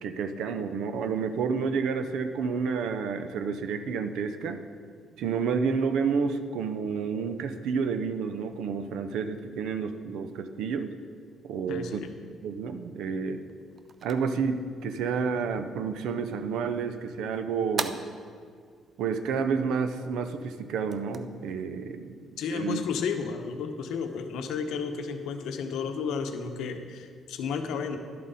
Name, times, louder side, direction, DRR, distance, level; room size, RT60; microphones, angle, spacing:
voice 1, 0.0-4.6 5.2-10.9 11.4-12.0 12.4-13.4 14.0-18.0 19.0-22.8, right 5 dB, 80° right, 9 dB, 0.6 m, -30 dB
voice 2, 11.7-12.1 22.4-28.0, left 5 dB, 80° left, 6 dB, 0.8 m, -32 dB
sound 1, 13.4-23.2, right 5 dB, 30° right, 0.3 m, -44 dB
11.5 x 7.5 x 4.1 m, 2.1 s
cardioid pair, 180°, 0 cm